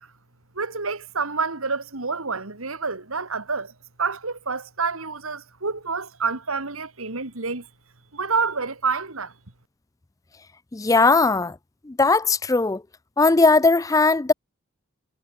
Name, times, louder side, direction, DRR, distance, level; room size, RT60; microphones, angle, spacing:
voice 1, 0.5-3.7 4.0-7.7 8.1-9.3, right 4 dB, 85° right, 2.6 m, -28 dB
voice 2, 10.7-11.6 11.9-12.8 13.2-14.3, left 3 dB, 15° left, 0.4 m, -18 dB
head